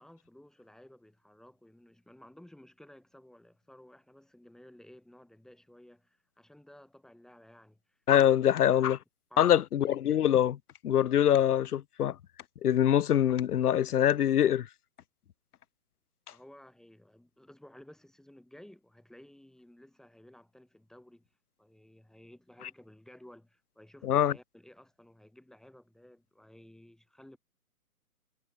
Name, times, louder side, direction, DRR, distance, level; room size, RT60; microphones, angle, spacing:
voice 1, 0.0-8.0 9.3-9.6 16.3-21.2 21.6-27.4, left 1 dB, ahead, 4.6 m, -55 dB
voice 2, 8.1-9.0 9.4-10.6 10.8-12.2 12.6-14.7 24.0-24.3, left 10 dB, 75° left, 0.6 m, -24 dB
figure-of-eight pair, 140°, 45 cm